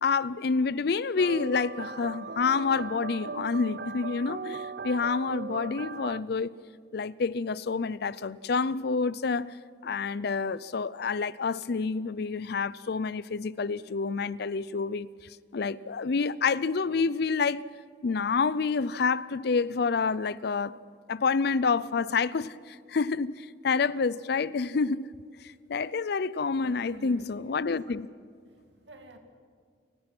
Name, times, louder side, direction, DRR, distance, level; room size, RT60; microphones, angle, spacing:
voice 1, 0.0-6.5 6.9-9.5 9.8-15.1 15.5-17.6 18.0-20.8 21.1-25.1 25.7-28.1, left 4 dB, 60° left, 0.5 m, -28 dB
sound 1, 1.2-6.2, right 4 dB, 55° right, 0.5 m, -38 dB
voice 2, 26.5-28.0 28.5-29.2, right 1 dB, 75° right, 2.3 m, -49 dB
29.0 x 17.0 x 6.1 m
head